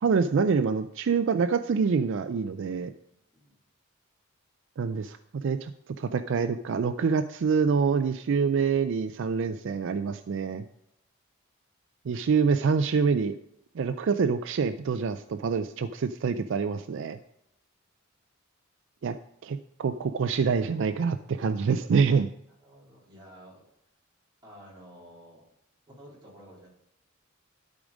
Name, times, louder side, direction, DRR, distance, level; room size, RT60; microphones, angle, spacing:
voice 1, 0.0-2.9 4.8-5.7 6.0-10.6 12.1-13.4 13.7-17.2 19.0-19.2 19.4-22.3, right 5 dB, 65° right, 10 dB, 0.4 m, -26 dB
voice 2, 22.6-23.6 24.4-25.4 25.9-26.7, equal, 20° right, -6 dB, 4.0 m, -51 dB
12.0 x 5.0 x 5.1 m, 0.78 s
head